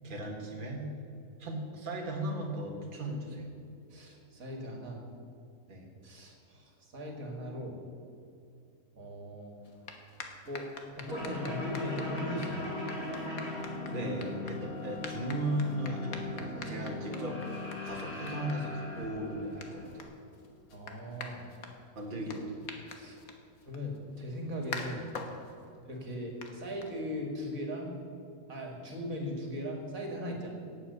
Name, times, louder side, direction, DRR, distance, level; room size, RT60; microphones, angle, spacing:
voice 1, 0.0-0.9 1.4-3.6 5.7-5.9 13.9-17.4 17.8-19.9 22.0-22.6, right 1 dB, 35° right, -1 dB, 1.9 m, -36 dB
voice 2, 3.9-5.0 6.0-7.8 8.9-9.6 10.5-10.7 10.9-12.6 13.9-14.1 20.7-21.5 22.1-22.3 22.9-23.2 23.7-25.1 25.8-27.9 28.5-30.5, equal, 65° right, 1 dB, 2.5 m, -39 dB
sound 1, 9.6-27.4, left 4 dB, 70° left, 1.8 m, -48 dB
sound 2, 11.0-20.0, left 2 dB, 40° left, 3.6 m, -39 dB
17.5 x 8.0 x 6.8 m, 2.6 s
omnidirectional pair, 1.6 m